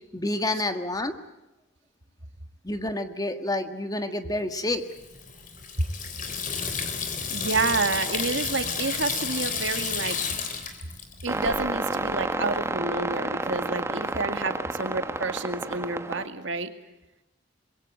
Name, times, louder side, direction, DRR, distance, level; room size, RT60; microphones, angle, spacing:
voice 1, 0.1-1.1 2.6-4.8, left 2 dB, 20° left, 8 dB, 1.6 m, -28 dB
Water tap faucet / Sink (filling or washing), 4.9-11.6, left 6 dB, 40° left, 3.5 m, -31 dB
voice 2, 7.3-10.2 11.2-16.7, right 3 dB, 70° right, 8 dB, 2.2 m, -29 dB
sound 1, 11.3-16.3, right 2 dB, 15° right, 1.1 m, -30 dB
26.0 x 22.5 x 7.9 m, 0.99 s
head